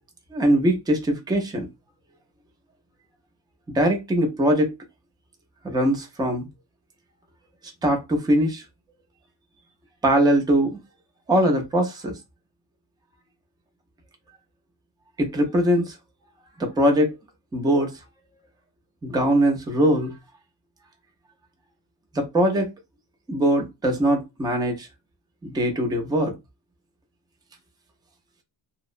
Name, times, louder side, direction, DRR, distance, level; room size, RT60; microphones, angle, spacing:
voice 1, 0.3-1.7 3.7-4.7 5.6-6.5 7.8-8.6 10.0-10.8 11.3-12.2 15.2-16.0 16.6-17.2 17.5-18.0 19.0-20.1 22.1-22.7 23.3-24.9 25.4-26.4, right 1 dB, 10° right, 0.3 m, -21 dB
2.8 x 2.0 x 2.4 m
wide cardioid pair, 170°, 49 cm